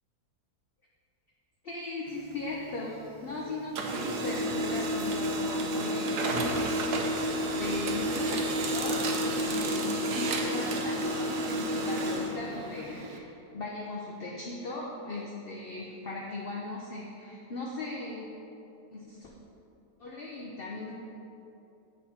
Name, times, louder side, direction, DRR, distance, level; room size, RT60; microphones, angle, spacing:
voice 1, 1.6-13.3 13.5-18.3 18.9-19.3 20.0-20.9, left 2 dB, 45° left, -3 dB, 0.8 m, -38 dB
Printer, 2.1-3.3 3.6-13.2, right 1 dB, 80° right, 1.4 m, -30 dB
9.6 x 4.1 x 5.6 m, 2.9 s
omnidirectional pair, 1.7 m